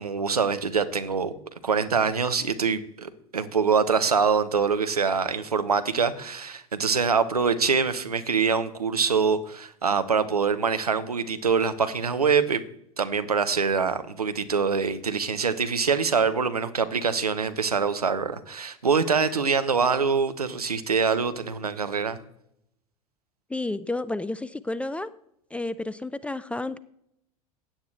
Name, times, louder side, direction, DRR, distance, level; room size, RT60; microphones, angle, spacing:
voice 1, 0.0-1.3 1.6-12.6 13.0-22.2, right 5 dB, 80° right, 10 dB, 0.9 m, -24 dB
voice 2, 23.5-25.1 25.5-26.8, left 2 dB, 5° left, 17 dB, 0.4 m, -31 dB
16.0 x 9.3 x 3.3 m, 0.74 s
figure-of-eight pair, 80°, 19 cm